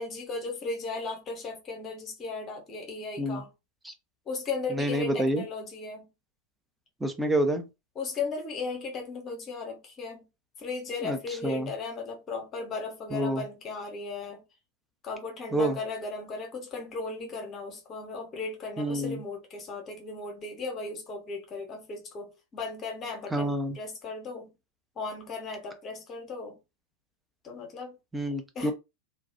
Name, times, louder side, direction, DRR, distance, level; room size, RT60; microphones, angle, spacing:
voice 1, 0.0-3.5 4.3-6.1 8.0-10.3 10.6-14.4 15.0-24.5 25.0-26.6 27.4-28.0 28.5-28.7, left 3 dB, 30° left, 0.9 m, -36 dB
voice 2, 4.7-5.4 7.0-7.7 11.0-11.7 13.1-13.4 15.5-15.8 18.8-19.2 23.3-23.8 28.1-28.7, right 1 dB, 5° right, 0.5 m, -28 dB
2.3 x 2.1 x 2.7 m
figure-of-eight pair, 90°, 0 cm